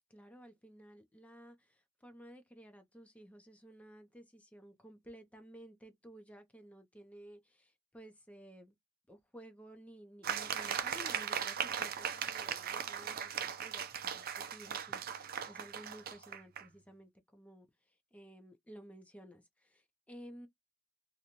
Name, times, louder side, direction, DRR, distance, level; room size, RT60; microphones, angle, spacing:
voice 1, 0.1-8.7 9.1-20.5, equal, 5° left, 0.6 m, -55 dB
sound 1, 10.2-16.7, right 8 dB, 45° right, 0.5 m, -38 dB
2.6 x 2.2 x 2.9 m
head